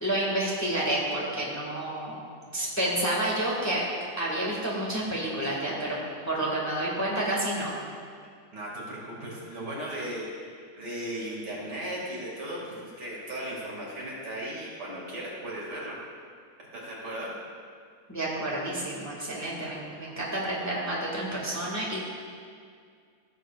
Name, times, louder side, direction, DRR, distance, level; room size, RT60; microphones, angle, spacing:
voice 1, 0.0-2.2 2.5-3.8 4.2-6.0 6.2-7.7 18.1-22.0, right 1 dB, 10° left, -5 dB, 1.6 m, -29 dB
voice 2, 8.5-16.0 16.7-17.3, right 1 dB, 70° right, -5 dB, 2.9 m, -36 dB
15.5 x 7.5 x 2.4 m, 2.1 s
omnidirectional pair, 1.9 m